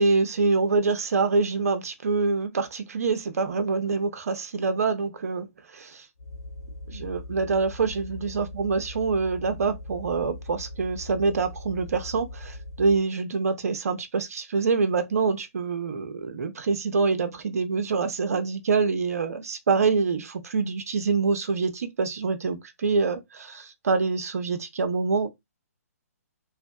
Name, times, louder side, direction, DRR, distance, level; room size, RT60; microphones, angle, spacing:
voice 1, 0.0-5.5 5.7-6.1 6.9-25.3, right 4 dB, 70° right, 0.5 m, -25 dB
sound 1, 6.2-13.1, left 2 dB, 90° left, 0.5 m, -40 dB
2.9 x 2.5 x 2.2 m
hypercardioid pair, 140°, 9 cm